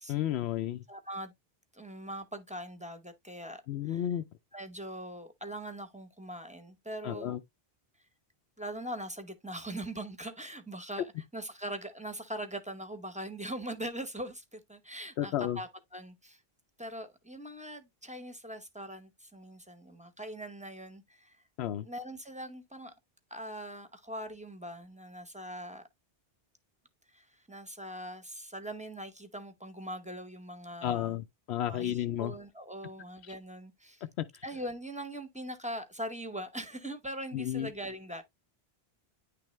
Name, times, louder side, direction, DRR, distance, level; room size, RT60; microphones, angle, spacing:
voice 1, 0.1-0.8 3.7-4.2 7.0-7.4 15.2-15.6 21.6-21.9 30.8-32.3 34.2-34.4 37.3-37.7, left 11 dB, 85° left, 0.8 m, -32 dB
voice 2, 0.9-1.3 1.7-4.1 4.5-7.4 8.6-16.4 16.8-21.4 21.8-22.9 23.3-25.8 27.1-31.2 31.7-34.0 34.4-38.2, right 1 dB, 10° right, 0.7 m, -41 dB
9.9 x 3.4 x 3.1 m
omnidirectional pair, 1.1 m